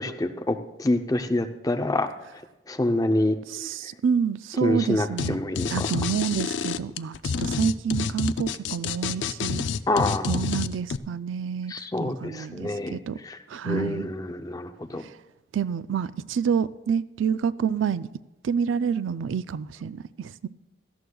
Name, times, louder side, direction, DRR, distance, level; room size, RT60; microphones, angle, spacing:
voice 1, 0.0-2.1 2.7-3.4 4.6-6.0 9.9-10.5 11.7-13.4 13.6-15.0, left 1 dB, 20° left, 0.6 m, -27 dB
voice 2, 3.5-5.4 5.7-9.6 10.3-11.7 12.0-13.2 13.5-14.1 15.5-18.1 18.4-20.5, right 7 dB, 85° right, 0.4 m, -28 dB
sound 1, 5.2-5.3 5.6-11.0, left 6 dB, 65° left, 0.4 m, -28 dB
17.5 x 13.0 x 2.3 m
head